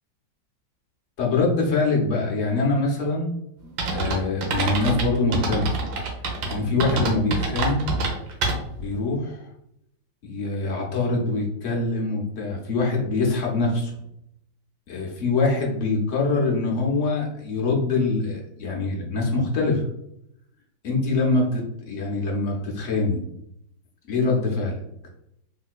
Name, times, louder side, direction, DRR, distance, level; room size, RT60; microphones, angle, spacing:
voice 1, 1.2-3.3 3.6-5.8 6.4-7.8 8.8-9.5 10.3-14.0 14.9-19.8 20.8-23.2 24.1-24.8, left 3 dB, 60° left, -2 dB, 0.9 m, -24 dB
sound 1, 3.8-8.9, right 2 dB, 85° right, 1.5 m, -26 dB
3.7 x 2.7 x 2.4 m, 0.77 s
omnidirectional pair, 2.0 m